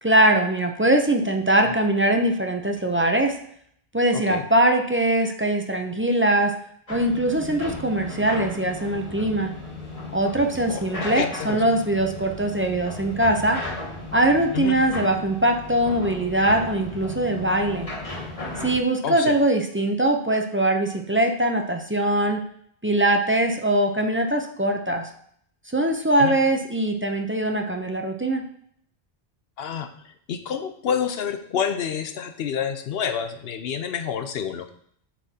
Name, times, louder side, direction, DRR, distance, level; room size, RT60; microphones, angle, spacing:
voice 1, 0.0-3.3 3.9-6.6 6.9-9.5 10.1-13.6 14.1-17.9 18.6-22.4 22.8-25.1 25.7-28.4, right 1 dB, 20° right, 3 dB, 0.3 m, -22 dB
sound 1, 6.9-18.8, left 2 dB, 30° left, 1.9 m, -35 dB
voice 2, 10.7-11.6 14.5-14.8 19.0-19.3 26.2-26.4 29.6-34.7, left 7 dB, 70° left, 8 dB, 0.8 m, -28 dB
8.3 x 5.8 x 2.8 m, 0.66 s
omnidirectional pair, 1.1 m